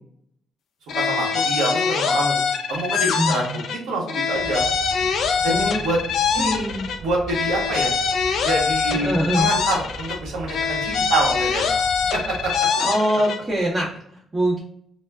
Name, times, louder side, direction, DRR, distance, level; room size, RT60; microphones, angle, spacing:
sound 1, 0.9-3.8 4.1-7.0 7.3-10.2 10.5-13.4, left 6 dB, 70° left, 0.3 m, -23 dB
voice 1, 0.9-2.4 2.7-4.6 5.4-6.0 6.3-6.7 7.0-7.9 8.4-12.7, right 2 dB, 85° right, -2 dB, 1.0 m, -26 dB
voice 2, 3.2-3.6 5.5-5.8 6.4-6.9 8.9-9.5 12.7-14.6, right 1 dB, 25° right, -7 dB, 0.7 m, -23 dB
Aircraft, 4.3-12.6, right 2 dB, 45° right, 0.4 m, -39 dB
2.3 x 2.1 x 3.3 m, 0.68 s
cardioid pair, 90°, 0 cm